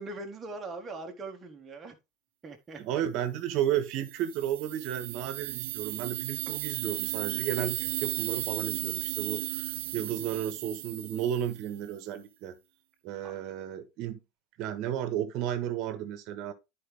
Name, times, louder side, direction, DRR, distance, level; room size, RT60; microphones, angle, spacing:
voice 1, 0.0-1.9 2.4-3.0 13.2-13.3, right 3 dB, 15° right, 1.5 m, -41 dB
voice 2, 2.7-12.5 13.0-14.2 14.6-16.5, right 10 dB, 45° right, 1.4 m, -33 dB
sound 1, 3.9-11.8, right 17 dB, 80° right, 0.5 m, -35 dB
11.0 x 4.8 x 3.4 m
supercardioid pair, 165°, 0 cm